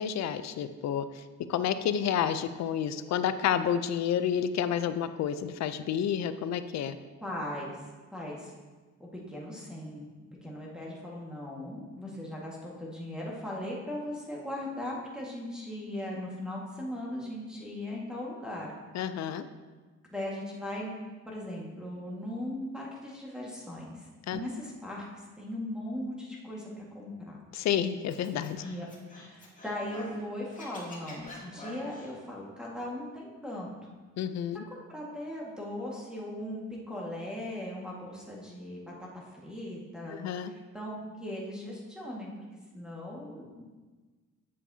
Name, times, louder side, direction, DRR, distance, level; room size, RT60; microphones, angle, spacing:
voice 1, 0.0-7.0 18.9-19.5 24.3-24.4 27.5-28.6 34.2-34.6 40.1-40.5, left 9 dB, 60° left, 12 dB, 0.5 m, -30 dB
voice 2, 7.2-7.8 8.1-8.5 9.0-10.1 10.4-18.7 20.0-20.9 21.3-27.4 28.6-28.9 29.2-33.9 34.7-42.3 42.7-43.6, left 1 dB, 5° right, -5 dB, 1.7 m, -38 dB
Scratching (performance technique), 28.1-30.2 30.5-32.1, left 2 dB, 25° left, 1.8 m, -47 dB
8.6 x 7.1 x 2.8 m, 1.3 s
cardioid pair, 90°, 30 cm